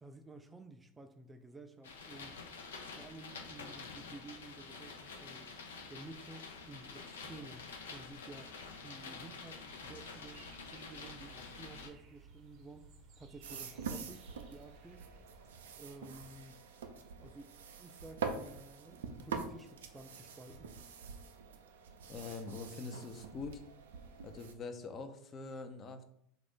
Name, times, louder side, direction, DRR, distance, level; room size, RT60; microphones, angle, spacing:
voice 1, 0.0-2.4 2.9-5.5 5.9-8.5 8.8-10.4 10.7-12.9 13.2-14.2 14.5-15.1 15.8-16.6 17.2-17.5 17.8-20.8, right 2 dB, 15° right, 7 dB, 0.3 m, -53 dB
sound 1, 1.8-11.9, left 4 dB, 85° left, 0.5 m, -48 dB
sound 2, 9.9-15.5, right 3 dB, 55° right, 0.7 m, -58 dB
sound 3, 13.4-24.5, right 5 dB, 85° right, 0.4 m, -45 dB
voice 2, 22.1-23.6 24.2-26.1, left 4 dB, 35° left, 6 dB, 0.5 m, -44 dB
3.1 x 2.5 x 3.5 m, 0.71 s
hypercardioid pair, 95°, 0 cm